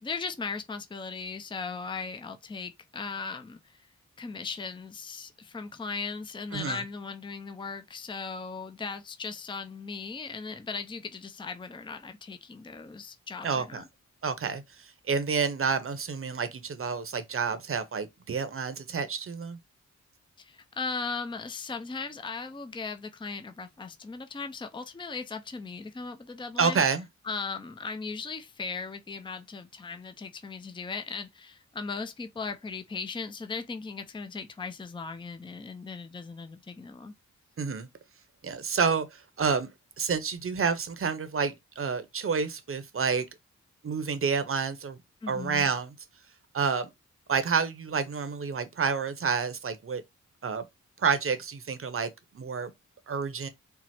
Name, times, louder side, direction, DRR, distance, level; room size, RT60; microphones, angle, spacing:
voice 1, 0.0-3.8 4.2-13.8 20.4-26.8 27.3-37.1 45.2-45.7, left 4 dB, 15° left, 0.5 m, -38 dB
voice 2, 6.5-6.8 13.4-13.8 14.2-19.6 26.6-27.0 37.6-37.9 38.4-39.7 40.0-43.2 43.8-45.0 45.3-45.9 46.5-46.9 47.3-50.0 50.4-50.7 51.0-52.7 53.1-53.5, right 5 dB, 45° right, 0.8 m, -29 dB
4.5 x 2.0 x 4.2 m
cardioid pair, 55°, 30 cm